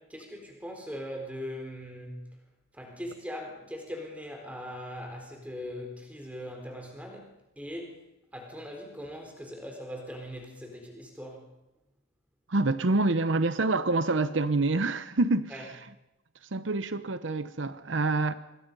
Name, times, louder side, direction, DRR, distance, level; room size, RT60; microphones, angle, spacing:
voice 1, 0.0-2.4 2.7-8.0 8.3-11.5 15.5-15.6, equal, 5° right, 4.2 m, -40 dB
voice 2, 12.5-15.8 16.4-18.3, right 2 dB, 80° right, 0.9 m, -27 dB
26.0 x 21.5 x 5.4 m
head